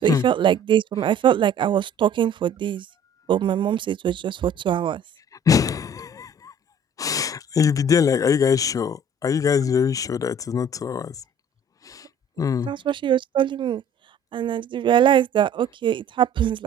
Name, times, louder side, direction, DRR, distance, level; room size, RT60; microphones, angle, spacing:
voice 1, 0.0-2.8 3.3-5.0 12.7-13.8 14.3-16.6, right 10 dB, 50° right, 7.0 m, -22 dB
voice 2, 5.5-6.5 7.0-11.2 11.8-12.1 12.4-12.7, left 7 dB, 30° left, 4.6 m, -22 dB
cardioid pair, 165°, 11 cm